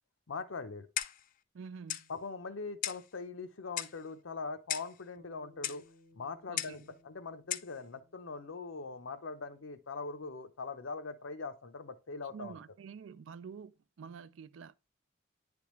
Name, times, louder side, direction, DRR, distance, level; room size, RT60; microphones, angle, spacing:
voice 1, 0.3-0.9 2.1-5.8 6.1-12.6, left 4 dB, 90° left, 0.7 m, -42 dB
Clock, 1.0-1.3 1.9-2.1 2.8-3.1 3.8-4.0 4.7-5.0 5.6-5.8 6.6-6.8 7.5-7.7, left 12 dB, 45° left, 0.3 m, -36 dB
voice 2, 1.5-2.1 6.5-6.9 12.3-14.7, right 6 dB, 80° right, 0.4 m, -48 dB
Bass guitar, 5.2-9.6, left 1 dB, 55° right, 1.0 m, -64 dB
9.3 x 3.5 x 3.1 m
head